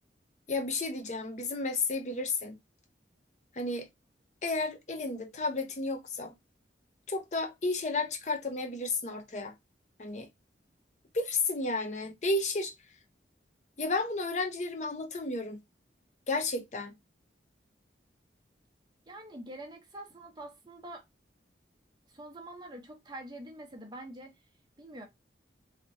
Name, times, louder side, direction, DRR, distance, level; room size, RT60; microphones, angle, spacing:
voice 1, 0.5-2.6 3.5-3.9 4.4-6.3 7.1-9.5 10.0-10.3 11.1-12.7 13.8-15.6 16.3-16.9, left 3 dB, 40° left, 0.6 m, -32 dB
voice 2, 19.1-21.0 22.1-24.4 24.8-25.1, right 1 dB, 25° right, 0.8 m, -45 dB
3.2 x 2.8 x 2.6 m
head